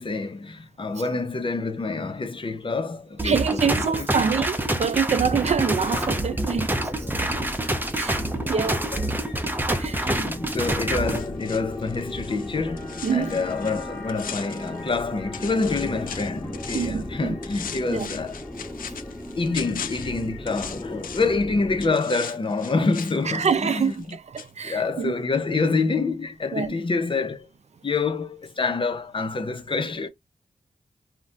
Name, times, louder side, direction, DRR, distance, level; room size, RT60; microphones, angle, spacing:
voice 1, 0.0-3.6 4.2-4.3 8.9-9.0 9.9-18.4 19.4-24.2 24.6-27.5 27.8-30.1, left 3 dB, 35° left, 0.6 m, -27 dB
sound 1, 3.2-11.2, right 1 dB, 15° right, 0.6 m, -27 dB
voice 2, 3.2-7.1 7.9-8.8 9.8-10.0 13.0-13.4 16.7-17.4 17.9-18.1 23.2-25.2 26.5-26.8, right 6 dB, 55° right, 0.4 m, -26 dB
sound 2, 5.2-21.9, left 1 dB, 10° left, 1.1 m, -36 dB
sound 3, 11.0-15.1 15.3-17.1 17.4-21.4 21.8-24.1 24.4-24.5, left 7 dB, 85° left, 0.4 m, -39 dB
2.3 x 2.2 x 3.8 m
cardioid pair, 70°, 14 cm